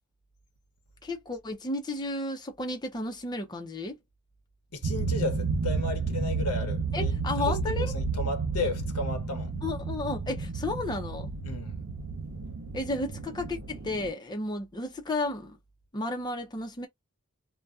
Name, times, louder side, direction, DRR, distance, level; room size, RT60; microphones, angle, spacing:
voice 1, 1.0-4.0 6.9-7.9 9.6-11.3 12.7-15.6 15.9-16.9, left 2 dB, 20° left, 0.5 m, -33 dB
voice 2, 4.7-9.5 11.4-11.8, left 2 dB, 85° left, 0.9 m, -34 dB
sound 1, 4.8-14.1, right 4 dB, 65° right, 0.6 m, -31 dB
2.6 x 2.1 x 2.3 m
head